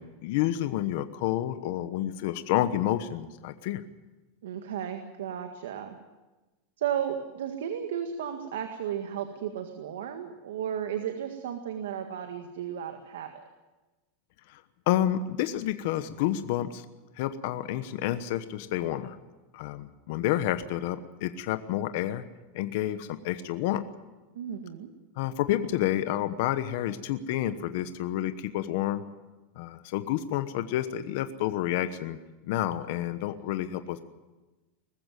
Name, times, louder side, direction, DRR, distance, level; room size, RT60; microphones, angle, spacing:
voice 1, 0.0-3.8 14.5-14.6 14.9-16.8 17.2-19.2 19.5-22.3 22.5-23.8 25.2-29.0 29.6-32.2 32.5-34.0, left 12 dB, 55° left, 11 dB, 1.1 m, -29 dB
voice 2, 4.4-6.0 6.8-13.5 24.3-24.9, right 9 dB, 90° right, 6 dB, 1.8 m, -34 dB
20.5 x 15.0 x 9.2 m, 1.2 s
supercardioid pair, 155°, 0 cm